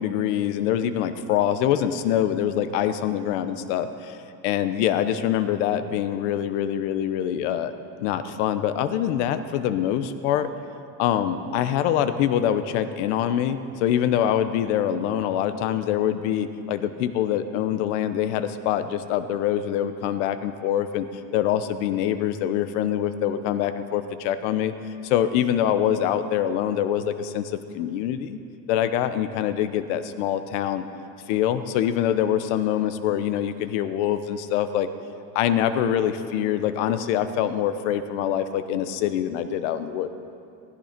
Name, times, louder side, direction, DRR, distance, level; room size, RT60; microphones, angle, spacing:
voice 1, 0.0-4.2 4.4-7.7 8.0-10.5 11.0-21.1 21.3-24.7 25.0-28.4 28.7-30.8 31.3-34.9 35.3-40.1, left 10 dB, 65° left, 11 dB, 1.0 m, -24 dB
16.5 x 14.0 x 5.2 m, 2.6 s
cardioid pair, 165°, 38 cm